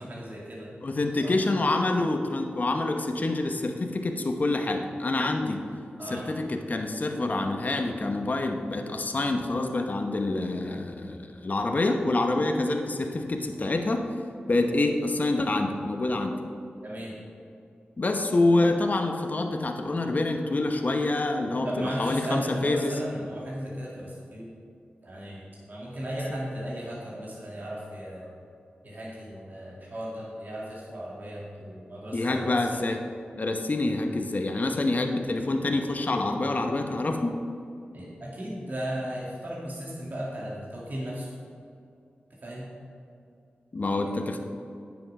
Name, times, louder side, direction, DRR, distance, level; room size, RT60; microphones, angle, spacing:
voice 1, 0.0-0.7 1.1-1.4 6.0-6.3 16.8-17.2 21.6-24.5 25.0-28.3 28.8-32.8 37.9-41.3 42.4-42.7, equal, 55° right, -5 dB, 2.1 m, -36 dB
voice 2, 0.8-5.6 6.0-14.1 14.5-16.4 18.0-23.0 32.1-33.0 33.4-37.4 43.7-44.4, left 2 dB, 50° left, 4 dB, 0.9 m, -27 dB
9.5 x 7.1 x 5.5 m, 2.5 s
cardioid pair, 60°, 4 cm